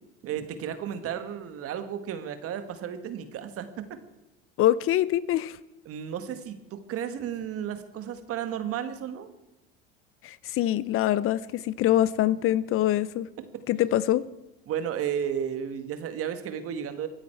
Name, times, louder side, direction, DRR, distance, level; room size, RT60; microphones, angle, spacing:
voice 1, 0.2-4.0 5.9-9.3 13.5-13.6 14.7-17.1, right 9 dB, 50° right, 1.7 m, -33 dB
voice 2, 4.6-5.6 10.2-13.3 13.7-14.3, left 13 dB, 45° left, 0.6 m, -24 dB
23.5 x 9.3 x 4.6 m
supercardioid pair, 90°, 30 cm